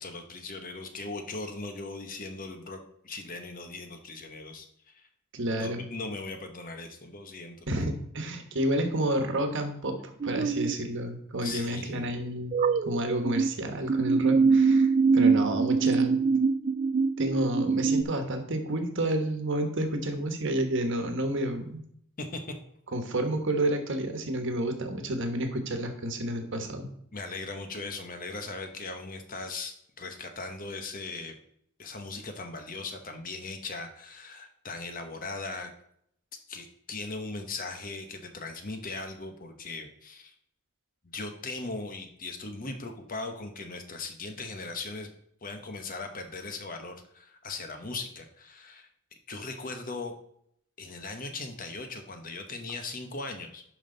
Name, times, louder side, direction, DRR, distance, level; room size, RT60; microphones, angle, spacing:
voice 1, 0.0-5.1 5.6-7.6 11.4-12.1 22.2-22.5 27.1-31.4 31.8-35.7 36.5-40.3 41.1-45.1 45.4-48.9 49.3-50.1 50.8-53.6, left 3 dB, 40° left, 6 dB, 1.1 m, -39 dB
voice 2, 5.3-5.9 7.7-10.0 10.2-12.5 12.8-16.2 17.2-21.8 22.9-26.9, right 1 dB, 60° right, 6 dB, 1.4 m, -30 dB
sound 1, 10.2-10.7 12.5-13.5 13.9-18.0, right 4 dB, 30° right, 0.3 m, -23 dB
11.0 x 5.5 x 4.0 m, 0.69 s
head